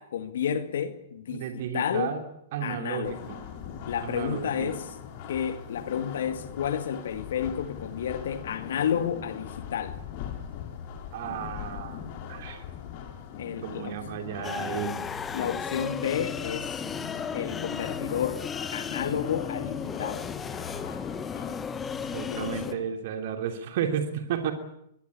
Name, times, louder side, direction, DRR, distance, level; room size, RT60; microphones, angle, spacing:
voice 1, 0.0-2.2 2.6-3.2 3.9-4.9 5.3-10.0 13.4-14.0 15.3-16.8 17.3-18.4 18.7-20.3 22.3-22.8, left 8 dB, 65° left, 2.2 m, -31 dB
voice 2, 1.3-2.2 2.5-3.4 4.0-4.7 11.1-12.6 13.6-15.2 22.1-24.5, right 8 dB, 55° right, 3.0 m, -33 dB
sound 1, 3.0-22.8, left 7 dB, 45° left, 5.3 m, -41 dB
sound 2, 14.4-22.7, left 6 dB, 15° left, 1.5 m, -35 dB
23.5 x 22.0 x 8.5 m
figure-of-eight pair, 110°, 0 cm